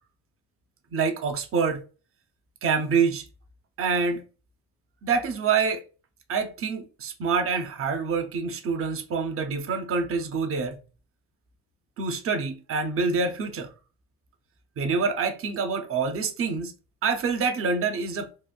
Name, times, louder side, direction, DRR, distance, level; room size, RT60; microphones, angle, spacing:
voice 1, 0.9-1.8 2.6-3.2 3.8-4.2 5.0-5.8 6.3-10.8 12.0-13.7 14.8-16.7 17.0-18.3, right 5 dB, 45° right, 0.6 m, -26 dB
3.0 x 2.5 x 2.3 m
cardioid pair, 90°, 30 cm